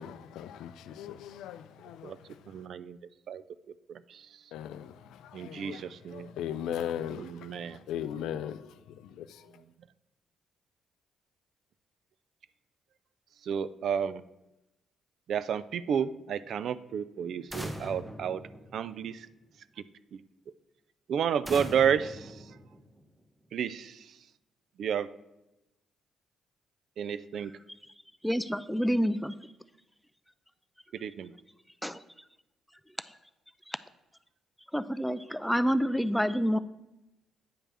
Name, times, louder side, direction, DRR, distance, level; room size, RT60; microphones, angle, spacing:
voice 1, 0.0-2.6 4.5-9.6, left 9 dB, 80° left, 0.4 m, -39 dB
voice 2, 2.5-3.0 3.3-3.4 3.9-4.2 5.3-6.3 7.2-7.8 13.5-14.2 15.3-18.4 18.7-19.3 21.1-22.3 23.5-24.0 24.8-25.1 27.0-27.5 31.0-31.3, right 8 dB, 70° right, 0.3 m, -31 dB
sound 1, 17.5-19.3 21.5-23.2, right 1 dB, 15° right, 0.9 m, -41 dB
voice 3, 28.2-29.3 31.8-32.0 33.7-33.8 34.7-36.6, equal, 5° left, 0.4 m, -28 dB
8.7 x 3.3 x 6.2 m
supercardioid pair, 60°, 0 cm